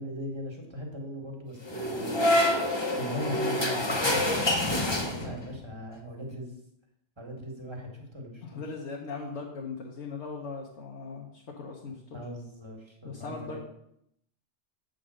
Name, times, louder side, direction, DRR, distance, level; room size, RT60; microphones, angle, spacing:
voice 1, 0.0-6.5 7.2-8.6 12.1-13.7, equal, 25° right, 1 dB, 1.6 m, -39 dB
sound 1, 1.7-5.6, left 1 dB, 25° left, 0.9 m, -27 dB
voice 2, 8.4-12.2 13.0-13.7, left 4 dB, 75° left, -1 dB, 1.3 m, -39 dB
8.3 x 3.9 x 6.3 m, 0.76 s
omnidirectional pair, 1.2 m